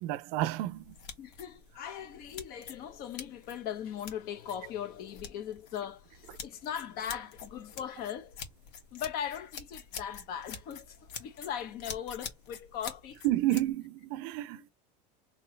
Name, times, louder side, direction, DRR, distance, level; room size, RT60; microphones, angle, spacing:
voice 1, 0.0-1.0 13.2-14.6, right 15 dB, 65° right, 0.6 m, -30 dB
sound 1, 0.7-13.7, left 6 dB, 90° left, 1.6 m, -47 dB
voice 2, 1.2-8.4 8.9-13.2 14.6-14.7, left 9 dB, 45° left, 1.0 m, -39 dB
4.6 x 2.9 x 3.2 m
cardioid pair, 155°, 21 cm